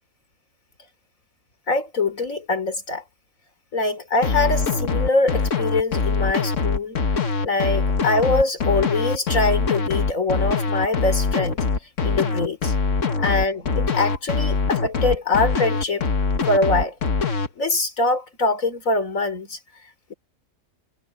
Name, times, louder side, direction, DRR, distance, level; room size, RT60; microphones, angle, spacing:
voice 1, 1.7-3.0 3.7-7.0 7.4-11.6 12.0-12.7 13.2-16.1 16.5-16.9 17.6-19.6, left 2 dB, 85° left, 4.0 m, -23 dB
sound 1, 4.2-17.5, left 4 dB, 65° left, 1.8 m, -23 dB
omnidirectional pair, 1.4 m